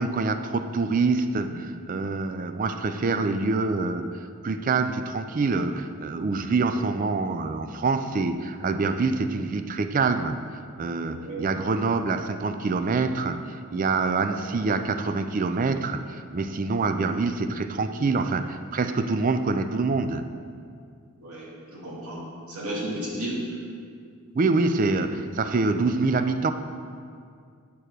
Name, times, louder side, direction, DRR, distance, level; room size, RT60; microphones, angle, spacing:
voice 1, 0.0-4.1 4.4-10.4 10.8-20.3 24.3-26.5, right 3 dB, 35° right, 9 dB, 0.3 m, -25 dB
voice 2, 21.2-23.4, right 1 dB, 80° right, -6 dB, 2.3 m, -34 dB
8.7 x 4.7 x 6.5 m, 2.2 s
head